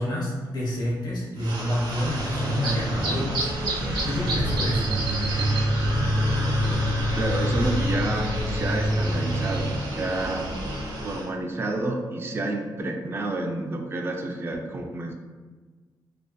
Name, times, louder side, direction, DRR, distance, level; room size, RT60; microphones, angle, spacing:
voice 1, 0.0-3.5 3.8-4.9, left 1 dB, 60° left, -4 dB, 0.7 m, -28 dB
sound 1, 1.4-11.3, equal, 80° right, 0.6 m, -26 dB
sound 2, 2.5-12.8, right 2 dB, 20° left, 0.7 m, -42 dB
voice 2, 7.2-10.5 11.0-15.1, right 2 dB, 30° right, 2 dB, 0.3 m, -29 dB
2.5 x 2.3 x 2.3 m, 1.4 s
cardioid pair, 90°, 8 cm